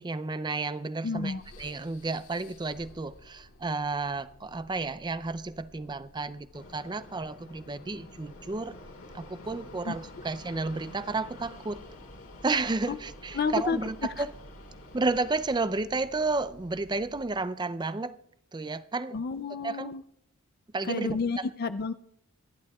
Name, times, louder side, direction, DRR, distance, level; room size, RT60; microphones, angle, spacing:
voice 1, 0.0-8.7 9.1-11.8 12.4-14.3 14.9-18.2 18.5-19.2 19.6-19.9 20.7-21.2, right 3 dB, 20° right, 14 dB, 0.4 m, -32 dB
voice 2, 1.0-1.4 9.8-10.0 12.9-13.0 13.3-13.8 14.2-14.3 19.1-20.0 20.8-21.9, left 4 dB, 45° left, 11 dB, 0.4 m, -30 dB
sound 1, 1.4-17.5, equal, 85° left, 4.0 m, -54 dB
Fixed-wing aircraft airplane, 6.5-15.6, left 2 dB, 65° left, 3.8 m, -49 dB
26.5 x 11.5 x 2.3 m, 0.74 s
head